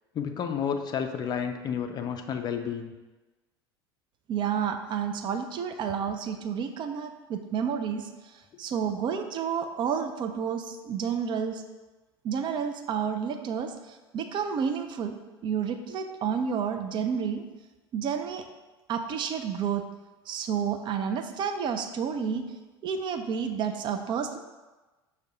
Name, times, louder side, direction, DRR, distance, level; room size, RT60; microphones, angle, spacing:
voice 1, 0.1-2.9, left 7 dB, 30° left, 6 dB, 0.4 m, -31 dB
voice 2, 4.3-8.1 8.6-11.6 12.2-15.2 15.4-17.4 17.9-18.5 18.9-19.8 20.3-22.5 22.8-24.4, right 7 dB, 35° right, 7 dB, 0.4 m, -30 dB
6.4 x 2.1 x 3.7 m, 1.2 s
figure-of-eight pair, 70°, 14 cm